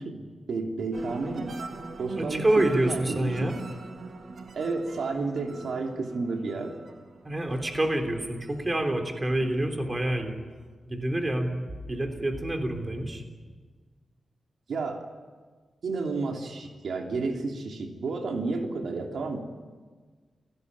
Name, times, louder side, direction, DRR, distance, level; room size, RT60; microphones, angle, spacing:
voice 1, 0.0-1.5 2.0-3.4 4.5-6.8 14.7-15.1 15.8-19.4, right 3 dB, 70° right, 2 dB, 3.1 m, -31 dB
sound 1, 0.9-9.7 10.2-10.7, right 3 dB, 50° right, 2.0 m, -43 dB
voice 2, 2.2-3.6 7.2-10.4 10.9-13.2, right 1 dB, 20° right, 4 dB, 3.4 m, -27 dB
29.5 x 17.5 x 9.7 m, 1.4 s
wide cardioid pair, 160°, 0 cm